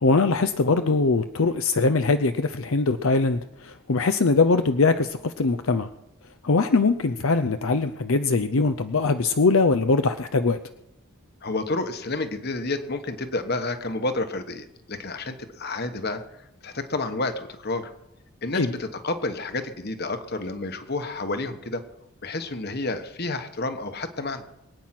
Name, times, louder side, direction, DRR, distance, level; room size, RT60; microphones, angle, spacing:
voice 1, 0.0-5.9 6.4-10.6 18.5-18.7, left 3 dB, 65° left, 8 dB, 0.6 m, -22 dB
voice 2, 11.4-16.2 16.6-17.9 18.4-21.8 22.2-24.4, left 2 dB, 45° left, 9 dB, 1.3 m, -30 dB
23.5 x 9.2 x 5.9 m, 0.91 s
head